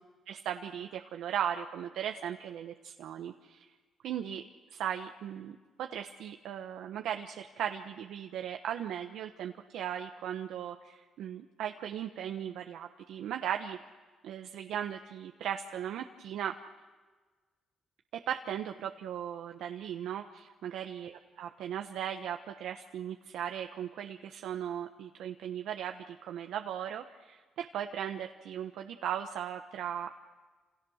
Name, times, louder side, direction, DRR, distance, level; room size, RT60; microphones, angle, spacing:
voice 1, 0.3-3.7 4.0-4.4 4.7-13.8 14.2-16.5 18.3-30.1, right 9 dB, 80° right, 4 dB, 1.2 m, -37 dB
29.5 x 28.5 x 6.5 m, 1.4 s
cardioid pair, 90°, 0 cm